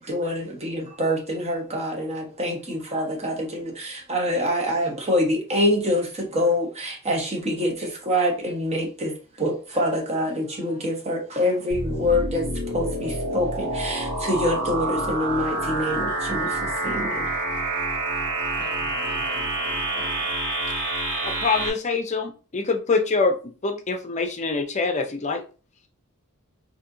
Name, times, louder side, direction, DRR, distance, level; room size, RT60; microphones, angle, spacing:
voice 1, 0.0-17.3, left 1 dB, 30° right, 1.0 m, -26 dB
sound 1, 11.7-21.7, right 2 dB, 85° right, 1.2 m, -27 dB
voice 2, 18.6-20.3, left 1 dB, 10° left, 1.5 m, -46 dB
voice 3, 21.2-25.4, left 4 dB, 30° left, 0.6 m, -25 dB
4.1 x 2.8 x 2.6 m
head